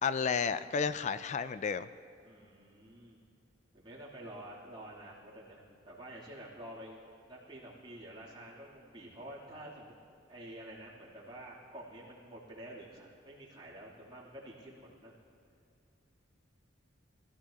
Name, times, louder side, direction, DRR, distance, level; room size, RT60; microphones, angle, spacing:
voice 1, 0.0-1.9, left 6 dB, 40° left, 14 dB, 0.3 m, -32 dB
voice 2, 2.2-3.2 3.7-7.0 7.3-9.9 10.3-15.1, right 1 dB, 25° right, -7 dB, 3.1 m, -49 dB
22.0 x 14.0 x 2.9 m, 2.6 s
head